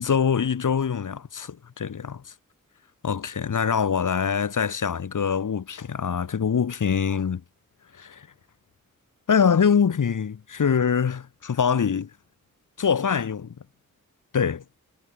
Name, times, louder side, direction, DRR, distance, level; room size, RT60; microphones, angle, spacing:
voice 1, 0.0-2.2 3.0-7.4 8.0-8.3 9.3-12.1 12.8-13.5 14.3-14.6, left 7 dB, 65° left, 1.5 m, -24 dB
cardioid pair, 60°, 34 cm